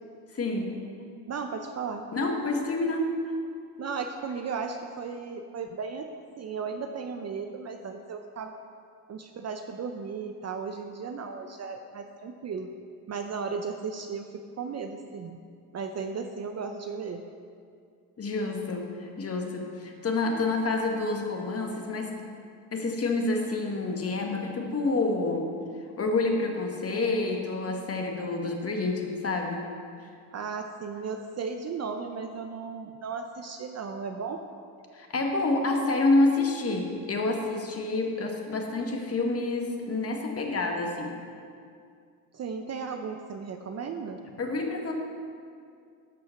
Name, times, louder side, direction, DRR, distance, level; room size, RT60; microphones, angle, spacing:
voice 1, 0.3-0.7 2.1-3.1 18.2-22.3 22.7-25.5 26.0-29.6 34.9-41.2 44.4-44.9, left 2 dB, 30° left, 2 dB, 1.6 m, -28 dB
voice 2, 1.3-2.1 3.8-6.1 6.4-8.5 9.1-12.7 13.1-15.4 15.7-17.2 30.3-34.4 42.3-44.2, right 5 dB, 35° right, 5 dB, 0.7 m, -35 dB
12.5 x 5.6 x 5.8 m, 2.3 s
supercardioid pair, 85°, 45 cm